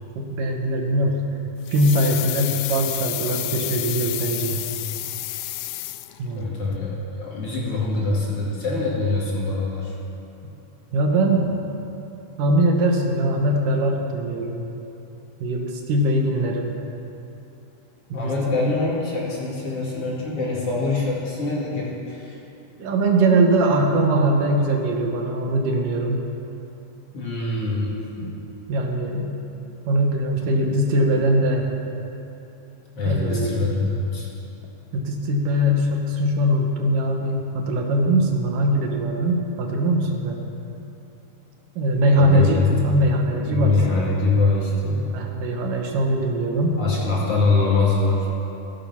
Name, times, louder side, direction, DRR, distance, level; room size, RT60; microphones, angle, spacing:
voice 1, 0.2-1.2 1.7-4.6 6.2-6.6 10.9-11.6 12.4-14.7 15.4-16.7 18.1-18.3 18.6-18.7 22.8-26.3 28.2-28.3 28.7-29.3 29.8-31.7 33.1-33.7 34.9-40.4 41.8-44.0 45.1-46.8, right 1 dB, 75° right, 2 dB, 2.8 m, -21 dB
sound 1, 1.7-6.5 6.7-6.8, left 16 dB, 90° left, 2.3 m, -30 dB
voice 2, 6.3-9.9 18.1-22.4 27.1-28.0 32.9-34.3 42.2-42.9 43.3-45.2 46.8-48.3, left 3 dB, 45° left, -5 dB, 3.1 m, -24 dB
15.5 x 12.0 x 5.7 m, 3.0 s
omnidirectional pair, 3.9 m